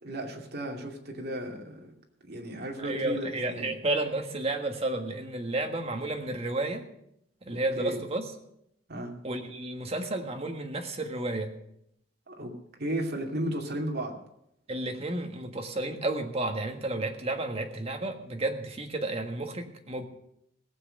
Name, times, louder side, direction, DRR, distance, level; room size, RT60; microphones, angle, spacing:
voice 1, 0.0-1.9 2.2-3.7 7.8-8.0 8.9-9.1 12.3-12.5 12.8-14.2, right 1 dB, 60° right, 1 dB, 2.6 m, -34 dB
voice 2, 2.8-6.9 7.5-8.3 9.2-11.5 14.7-20.1, right 2 dB, 35° right, 4 dB, 1.6 m, -32 dB
17.5 x 7.8 x 6.6 m, 0.76 s
head